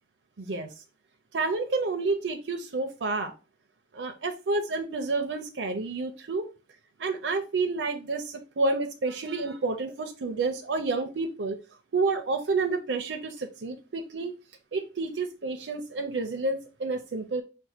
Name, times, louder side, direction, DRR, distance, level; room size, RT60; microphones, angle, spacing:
voice 1, 0.4-0.7 1.3-3.3 3.9-6.5 7.0-11.6 11.9-14.3 14.7-17.4, right 3 dB, 75° right, 4 dB, 0.6 m, -29 dB
5.2 x 2.2 x 4.3 m, 0.31 s
head